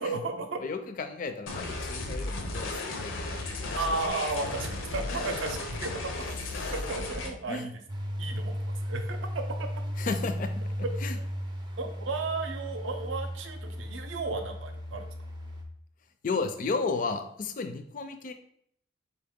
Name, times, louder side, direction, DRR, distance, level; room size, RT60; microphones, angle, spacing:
voice 1, 0.0-0.6 3.8-6.4 6.7-7.7 8.2-9.7 10.8-10.9 11.8-15.1, right 3 dB, 75° right, 6 dB, 0.6 m, -34 dB
voice 2, 0.6-4.1 5.1-5.2 7.5-7.7 10.0-10.7 11.0-11.2 16.2-18.3, left 4 dB, 40° left, 8 dB, 0.4 m, -34 dB
sound 1, 1.5-7.3, left 2 dB, 80° left, 0.7 m, -34 dB
sound 2, 7.9-15.6, equal, 20° right, 0.4 m, -35 dB
4.0 x 2.8 x 3.6 m, 0.68 s
head